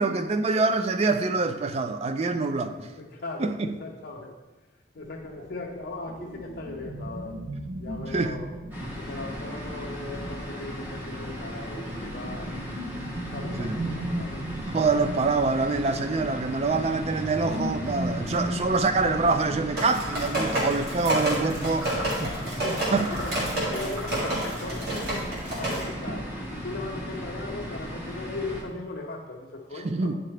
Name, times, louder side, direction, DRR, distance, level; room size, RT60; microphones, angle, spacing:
voice 1, 0.0-2.9 3.4-3.8 8.1-8.3 13.6-13.8 14.7-22.3 22.9-23.1 26.1-26.2 29.8-30.2, right 3 dB, 30° right, 0.3 m, -25 dB
voice 2, 2.6-4.4 4.9-7.4 7.8-8.5 9.0-12.7 13.0-14.5 18.1-18.6 22.4-25.3 25.5-30.1, left 2 dB, 55° left, 0.5 m, -38 dB
sound 1, 5.0-10.2 11.1-20.4, right 1 dB, 80° right, 0.9 m, -37 dB
sound 2, 8.7-28.6, equal, 10° right, 0.9 m, -36 dB
sound 3, 19.8-25.8, right 1 dB, 50° right, 1.8 m, -29 dB
9.6 x 3.8 x 3.3 m
head